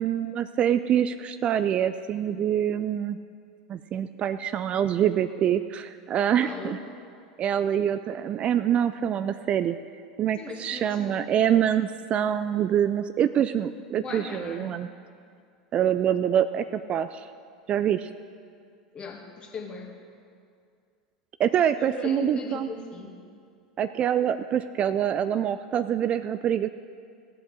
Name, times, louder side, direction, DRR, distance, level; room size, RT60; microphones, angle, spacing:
voice 1, 0.0-3.2 3.7-6.8 7.4-9.8 10.2-14.9 15.7-17.3 17.7-18.1 21.4-22.7 23.8-26.7, right 9 dB, 35° right, 12 dB, 0.3 m, -25 dB
voice 2, 6.4-6.8 10.4-11.3 14.0-14.7 18.9-19.9 21.9-23.2, left 4 dB, 30° left, 2 dB, 1.8 m, -38 dB
15.5 x 7.9 x 4.8 m, 2.3 s
figure-of-eight pair, 80°, 3 cm